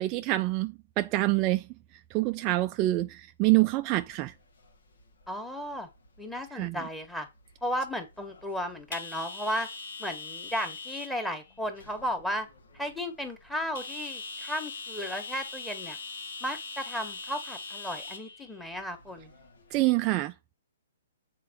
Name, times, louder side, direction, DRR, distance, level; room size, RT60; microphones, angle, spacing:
voice 1, 0.0-4.3 6.5-6.8 19.7-20.5, right 18 dB, 30° right, 0.4 m, -27 dB
sound 1, 3.9-20.0, left 4 dB, 70° left, 1.7 m, -44 dB
voice 2, 5.3-5.9 6.2-7.3 7.6-9.7 10.0-12.5 12.7-16.0 16.4-19.3, equal, 5° left, 1.7 m, -34 dB
7.5 x 4.5 x 5.4 m
hypercardioid pair, 130°, 0 cm